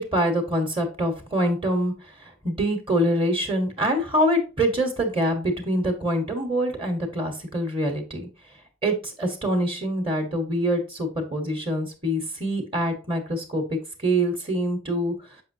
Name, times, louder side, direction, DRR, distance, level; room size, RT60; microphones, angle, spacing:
voice 1, 0.0-1.9 2.2-8.3 8.8-15.1, equal, 30° right, 2 dB, 1.3 m, -25 dB
7.3 x 5.4 x 2.7 m, 0.34 s
head